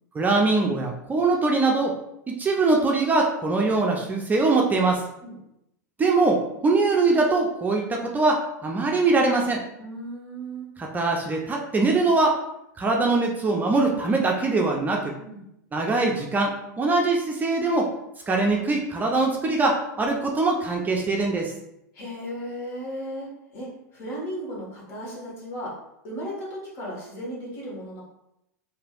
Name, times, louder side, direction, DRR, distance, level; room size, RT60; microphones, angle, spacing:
voice 1, 0.1-1.9 2.3-5.0 6.0-9.6 10.8-12.4 12.8-15.2 15.7-17.9 18.3-21.5, right 3 dB, 20° right, 0 dB, 0.4 m, -22 dB
voice 2, 9.8-10.7 15.2-15.4 21.9-25.7 26.0-28.0, equal, 55° left, -4 dB, 1.4 m, -35 dB
3.2 x 2.6 x 2.4 m, 0.83 s
hypercardioid pair, 105°, 10 cm